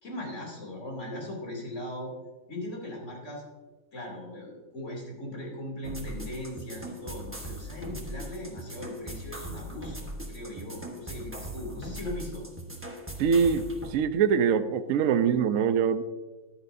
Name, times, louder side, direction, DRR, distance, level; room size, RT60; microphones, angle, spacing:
voice 1, 0.0-2.1 2.5-3.4 3.9-12.4, left 1 dB, 35° left, -1 dB, 3.1 m, -39 dB
sound 1, 5.8-13.9, right 1 dB, 10° right, 0.7 m, -40 dB
voice 2, 13.2-16.0, right 7 dB, 80° right, 10 dB, 0.7 m, -24 dB
14.0 x 11.0 x 2.6 m, 1.2 s
omnidirectional pair, 2.2 m